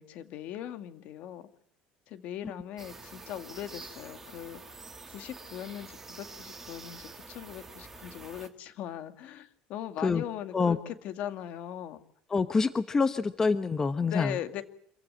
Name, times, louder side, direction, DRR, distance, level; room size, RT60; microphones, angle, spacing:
voice 1, 0.0-1.4 2.1-4.8 5.1-12.0 14.1-14.6, left 11 dB, 55° left, 10 dB, 2.2 m, -39 dB
sound 1, 2.8-8.5, right 3 dB, 10° right, 2.4 m, -47 dB
voice 2, 12.3-14.4, left 4 dB, 20° left, 12 dB, 0.9 m, -26 dB
26.5 x 15.5 x 9.6 m, 0.65 s
cardioid pair, 145°, 3 cm